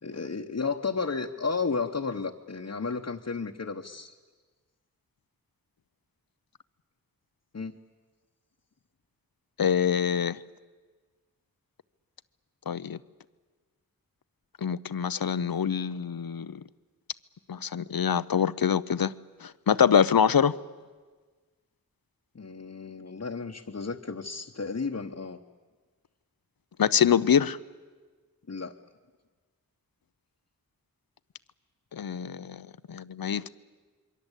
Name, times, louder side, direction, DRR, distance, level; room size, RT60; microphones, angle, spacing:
voice 1, 0.0-4.1 7.5-7.7 22.3-25.4 28.5-28.7, left 4 dB, 50° left, 2 dB, 1.1 m, -33 dB
voice 2, 9.6-10.4 12.7-13.0 14.6-16.6 17.5-19.1 19.4-20.5 26.8-27.6 31.9-33.5, left 8 dB, 85° left, 17 dB, 0.7 m, -25 dB
27.0 x 23.0 x 8.2 m, 1.4 s
wide cardioid pair, 50°, 35 cm